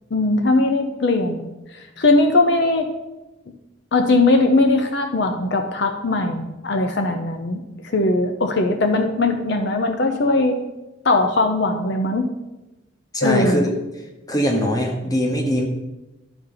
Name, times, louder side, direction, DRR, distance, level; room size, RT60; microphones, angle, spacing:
voice 1, 0.1-1.4 2.0-2.9 3.9-7.6 7.9-10.5 11.0-12.3 13.2-13.7, left 2 dB, 60° left, 5 dB, 0.6 m, -19 dB
voice 2, 13.1-13.7 14.3-15.6, equal, 20° left, 2 dB, 1.1 m, -21 dB
12.0 x 4.3 x 3.8 m, 1.0 s
head